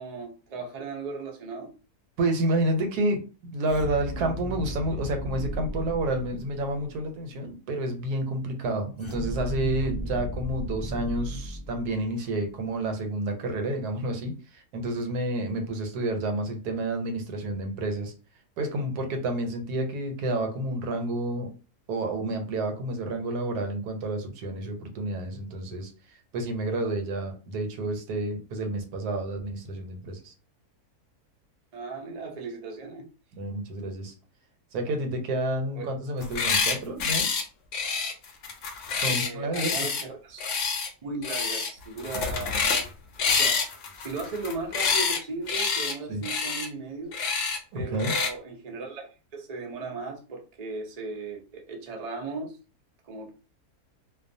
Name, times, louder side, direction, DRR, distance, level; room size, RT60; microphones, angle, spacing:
voice 1, 0.0-1.7 31.7-33.0 35.8-35.9 39.1-40.5 41.0-42.9 43.3-43.6 44.0-47.1 47.7-52.6 53.0-53.3, right 3 dB, 65° right, 0 dB, 0.3 m, -37 dB
voice 2, 2.2-18.1 18.6-21.5 21.9-25.9 26.3-30.3 33.4-34.1 34.7-37.3 38.9-39.9 46.1-46.2 47.7-48.1, right 1 dB, 85° right, 5 dB, 1.2 m, -29 dB
sound 1, 3.7-7.0 9.0-12.3, equal, 45° left, 0.3 m, -35 dB
sound 2, 36.2-36.8 37.0-37.4 37.7-40.0 40.4-40.9 41.2-41.7 42.0-42.9 43.2-45.2 45.5-45.9 46.2-46.7 47.1-47.6 48.0-48.3, left 5 dB, 65° left, 0.8 m, -27 dB
2.4 x 2.2 x 2.6 m, 0.34 s
omnidirectional pair, 1.6 m